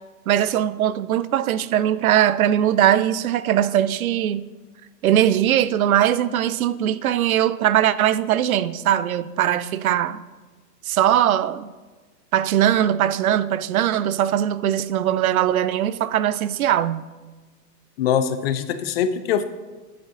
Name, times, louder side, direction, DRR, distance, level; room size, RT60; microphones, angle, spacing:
voice 1, 0.3-4.4 5.0-10.2 10.9-11.7 12.3-17.0, right 11 dB, 60° right, 0.6 m, -20 dB
voice 2, 18.0-19.4, left 8 dB, 40° left, 0.6 m, -22 dB
10.5 x 7.1 x 3.8 m
figure-of-eight pair, 110°, 49 cm